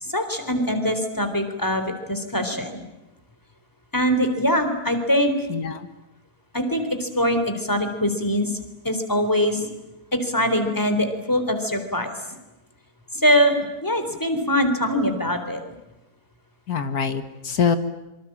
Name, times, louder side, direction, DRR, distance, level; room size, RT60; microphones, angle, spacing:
voice 1, 0.0-2.8 3.9-5.5 6.5-8.6 8.8-9.7 10.1-12.1 13.1-13.6 13.8-15.6, equal, 10° left, 7 dB, 4.0 m, -22 dB
voice 2, 5.5-5.8 16.7-17.8, left 6 dB, 85° left, 10 dB, 2.1 m, -24 dB
26.5 x 25.0 x 8.8 m, 1.0 s
omnidirectional pair, 1.6 m